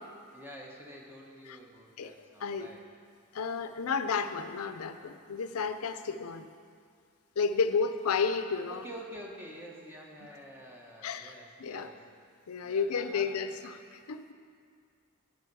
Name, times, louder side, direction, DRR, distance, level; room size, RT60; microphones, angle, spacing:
voice 1, 0.3-2.8 8.7-12.0 12.6-13.3, equal, 10° right, -1 dB, 1.2 m, -48 dB
voice 2, 3.3-6.5 7.4-8.9 11.0-11.9 12.5-14.3, left 5 dB, 90° left, 10 dB, 0.5 m, -32 dB
10.5 x 8.0 x 6.1 m, 2.2 s
head